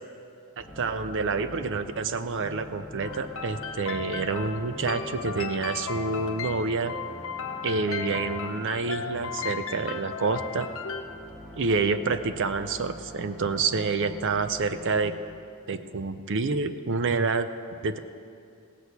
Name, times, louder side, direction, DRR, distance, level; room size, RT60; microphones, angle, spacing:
sound 1, 0.6-15.2, equal, ahead, 2.6 m, -44 dB
voice 1, 0.6-6.9 7.6-10.7 11.6-15.1 15.7-17.5 17.8-18.0, right 4 dB, 55° right, 11 dB, 0.5 m, -28 dB
sound 2, 3.0-11.0, left 6 dB, 60° left, 0.9 m, -36 dB
17.0 x 6.3 x 8.1 m, 2.5 s
head